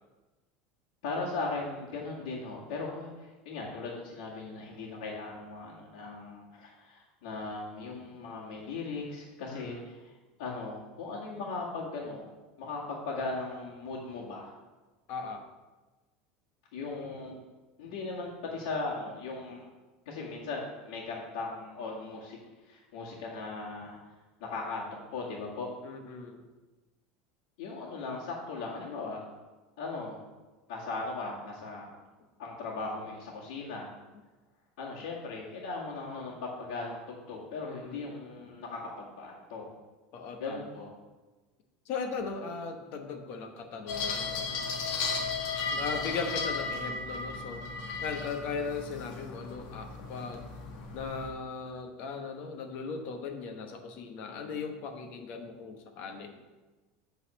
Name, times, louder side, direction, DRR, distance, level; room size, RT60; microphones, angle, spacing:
voice 1, 1.0-10.0 10.4-12.3 12.6-14.5 16.7-17.4 17.8-19.7 20.1-22.4 22.7-24.0 24.4-25.7 27.6-29.2 29.8-30.2 30.7-31.9 32.4-33.9 34.8-39.7 40.4-40.9 44.5-44.8 48.6-48.7 54.3-54.6, left 3 dB, 80° left, -8 dB, 2.0 m, -38 dB
voice 2, 9.5-9.9 15.1-15.4 25.8-26.4 37.6-38.1 40.1-40.7 41.9-44.6 45.7-47.6 48.0-50.4 50.9-56.4, left 5 dB, 45° left, 5 dB, 1.0 m, -38 dB
sound 1, 43.9-51.3, left 4 dB, 60° left, 1.5 m, -35 dB
8.7 x 4.1 x 6.4 m, 1.2 s
supercardioid pair, 165°, 4 cm